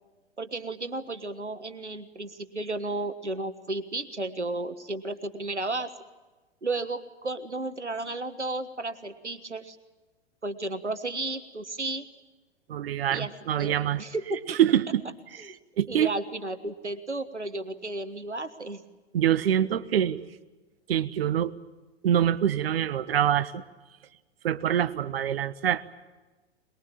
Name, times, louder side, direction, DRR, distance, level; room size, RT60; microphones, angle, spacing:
voice 1, 0.4-5.9 6.6-9.8 10.4-12.0 13.1-13.3 13.6-14.4 15.4-15.6 15.9-18.8, right 2 dB, 90° right, 10 dB, 1.6 m, -33 dB
voice 2, 12.7-14.0 14.5-15.0 15.8-16.1 19.1-20.3 20.9-21.5 22.0-23.6 24.4-25.8, right 10 dB, 60° right, 14 dB, 1.3 m, -25 dB
22.5 x 22.0 x 8.7 m, 1.2 s
figure-of-eight pair, 100°, 34 cm